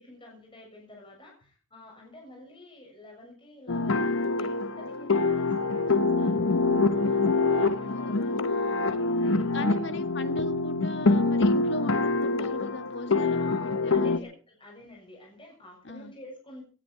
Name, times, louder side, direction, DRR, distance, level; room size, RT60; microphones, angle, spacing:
voice 1, 0.0-6.6 6.9-9.9 13.3-16.6, left 1 dB, 25° left, 0 dB, 6.9 m, -49 dB
sound 1, 3.7-14.2, left 3 dB, 85° left, 1.0 m, -25 dB
voice 2, 7.5-9.0 9.5-14.3 15.8-16.1, left 2 dB, 60° left, 9 dB, 1.7 m, -38 dB
18.5 x 12.5 x 4.7 m, 0.38 s
head